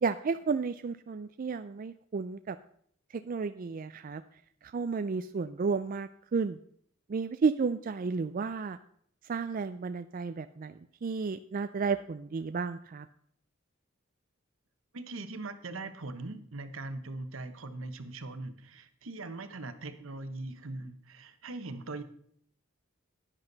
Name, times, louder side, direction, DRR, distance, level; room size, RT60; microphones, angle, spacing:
voice 1, 0.0-2.6 3.1-4.2 4.6-6.6 7.1-8.8 9.3-13.1, right 5 dB, 45° right, 10 dB, 0.4 m, -32 dB
voice 2, 14.9-22.0, right 2 dB, 75° right, 11 dB, 1.0 m, -41 dB
10.5 x 10.0 x 4.0 m, 0.64 s
head